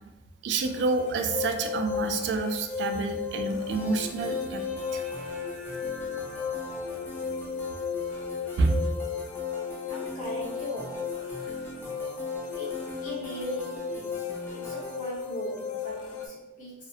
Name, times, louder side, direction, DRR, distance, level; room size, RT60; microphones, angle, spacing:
voice 1, 0.4-4.6 4.9-5.0 8.6-8.8, right 3 dB, 75° right, 5 dB, 0.3 m, -28 dB
sound 1, 0.6-16.3, left 6 dB, 85° left, 0.4 m, -35 dB
sound 2, 3.7-15.0, left 1 dB, 10° left, 0.4 m, -41 dB
voice 2, 9.9-11.1 12.5-14.3 14.5-16.9, equal, 50° left, -5 dB, 0.8 m, -39 dB
2.4 x 2.0 x 2.6 m, 1.0 s
head